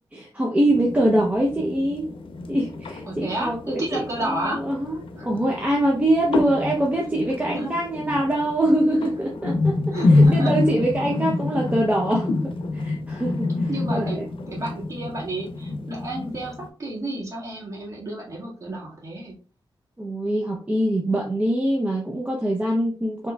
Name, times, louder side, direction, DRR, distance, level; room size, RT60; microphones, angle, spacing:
voice 1, 0.1-2.1 2.5-4.0 4.5-5.0 5.2-9.7 10.1-14.2 20.0-23.3, right 1 dB, 15° right, -2 dB, 0.6 m, -23 dB
sound 1, 0.7-16.7, left 2 dB, 85° left, 0.6 m, -27 dB
voice 2, 3.1-5.3 7.4-7.7 9.9-10.5 11.6-11.7 13.7-14.2 14.5-19.3, right 1 dB, 40° right, -5 dB, 1.7 m, -32 dB
4.6 x 3.0 x 2.2 m, 0.39 s
wide cardioid pair, 130°, 9 cm